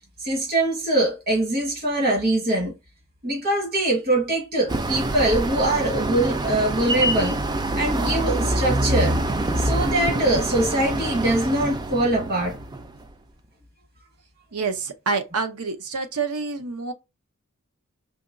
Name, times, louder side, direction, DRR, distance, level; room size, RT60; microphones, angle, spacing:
voice 1, 0.2-2.7 3.2-7.4 7.8-9.1 9.6-12.6, right 1 dB, 45° right, 1.4 m, -23 dB
sound 1, 4.7-13.0, right 1 dB, 20° right, 0.3 m, -25 dB
voice 2, 14.5-16.9, right 4 dB, 80° right, 0.7 m, -27 dB
5.0 x 2.9 x 2.5 m
head